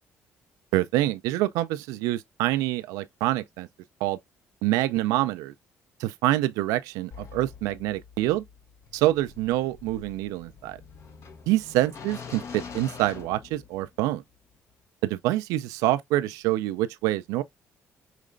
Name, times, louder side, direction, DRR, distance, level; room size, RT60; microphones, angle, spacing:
voice 1, 0.7-3.7 4.0-4.2 4.6-5.5 6.0-8.4 8.9-10.8 11.5-14.2 15.0-17.4, right 16 dB, 90° right, 0.3 m, -26 dB
sound 1, 7.1-14.0, left 6 dB, 55° left, 1.0 m, -45 dB
5.0 x 3.2 x 2.4 m
supercardioid pair, 75°, 6 cm